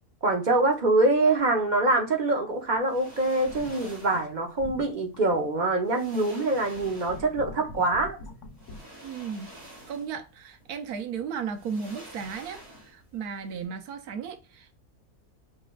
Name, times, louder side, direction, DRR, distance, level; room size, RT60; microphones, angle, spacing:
voice 1, 0.2-8.2, right 2 dB, 40° right, 0.8 m, -24 dB
sound 1, 2.8-4.3 5.4-5.5 5.8-7.4 8.5-10.3 10.6-10.7 11.5-13.1 13.4-13.6, right 1 dB, 20° right, 2.3 m, -48 dB
sound 2, 3.5-4.3 4.6-5.6 6.1-6.2 6.7-8.8, left 2 dB, 60° left, 1.0 m, -43 dB
voice 2, 9.0-9.6 9.9-14.8, right 6 dB, 85° right, 1.2 m, -35 dB
5.3 x 3.3 x 2.3 m
omnidirectional pair, 1.6 m